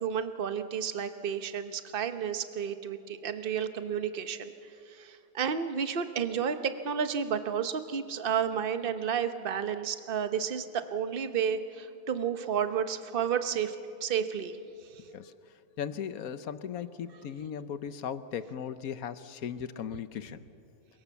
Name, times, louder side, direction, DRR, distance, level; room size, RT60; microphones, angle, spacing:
voice 1, 0.0-4.5 4.9-13.8 14.0-14.6 14.9-15.0, right 7 dB, 40° right, 9 dB, 1.1 m, -31 dB
voice 2, 15.8-20.4, left 8 dB, 65° left, 13 dB, 1.2 m, -37 dB
28.5 x 23.5 x 7.1 m, 2.6 s
omnidirectional pair, 1.7 m